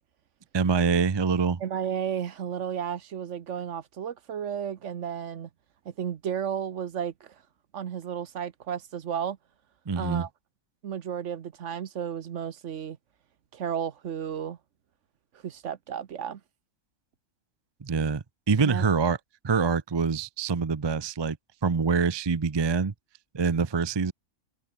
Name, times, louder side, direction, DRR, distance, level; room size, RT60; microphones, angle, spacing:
voice 1, 0.5-1.6 9.9-10.3 17.8-19.2 19.4-21.4 21.6-22.9 23.3-24.1, right 5 dB, 30° right, 0.5 m, -25 dB
voice 2, 1.6-5.5 6.0-7.3 7.7-9.4 9.9-10.3 10.8-13.0 13.5-14.6 15.4-16.4 18.6-18.9, right 8 dB, 60° right, 1.2 m, -33 dB
omnidirectional pair, 1.5 m